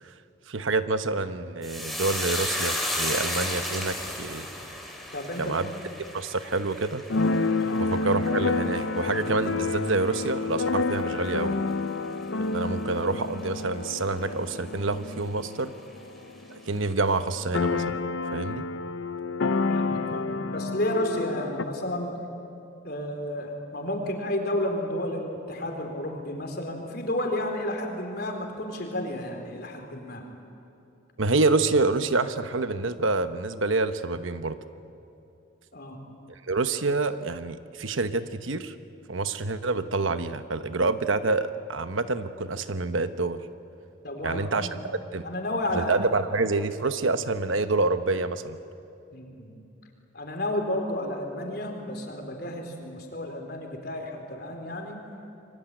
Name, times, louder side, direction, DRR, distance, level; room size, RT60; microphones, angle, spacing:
voice 1, 0.5-4.5 5.4-5.7 6.1-7.0 7.8-11.6 12.4-15.7 16.5-18.0 18.3-18.7 31.2-34.6 36.5-38.7 39.1-43.4 44.2-44.7 45.1-45.3 45.7-48.6, right 3 dB, 80° right, 10 dB, 1.1 m, -27 dB
sound 1, 1.6-10.2 10.5-11.2 11.5-11.7, left 1 dB, ahead, 3.4 m, -34 dB
voice 2, 5.1-5.7 7.6-7.9 19.7-22.1 22.8-30.2 35.7-36.0 44.0-44.8 45.2-45.9 49.1-49.5 50.1-55.0, left 1 dB, 50° left, 3 dB, 4.0 m, -31 dB
Keyboard (musical), 7.1-16.6 16.9-17.0 17.2-21.6, left 3 dB, 75° left, 0.7 m, -29 dB
27.0 x 23.5 x 9.1 m, 2.7 s
head